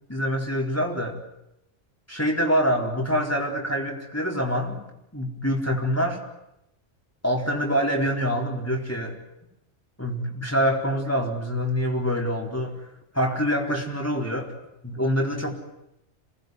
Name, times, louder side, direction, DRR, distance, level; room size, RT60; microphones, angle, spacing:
voice 1, 0.1-1.2 2.1-4.8 5.1-6.2 7.2-9.2 10.0-12.8 13.1-14.5 14.8-15.5, equal, 10° left, 0 dB, 4.4 m, -25 dB
28.0 x 19.5 x 9.5 m, 0.84 s
omnidirectional pair, 1.2 m